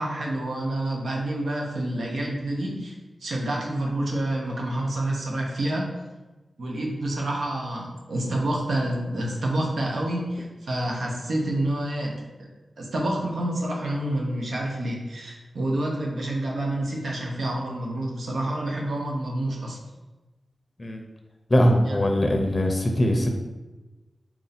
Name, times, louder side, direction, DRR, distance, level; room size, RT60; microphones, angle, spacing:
voice 1, 0.0-2.9 3.2-6.0 6.6-12.5 12.8-19.8 21.9-22.0, right 1 dB, 80° right, -2 dB, 0.9 m, -28 dB
voice 2, 21.5-23.3, equal, 35° left, 3 dB, 0.6 m, -21 dB
4.5 x 2.7 x 4.1 m, 1.1 s
wide cardioid pair, 75°, 0 cm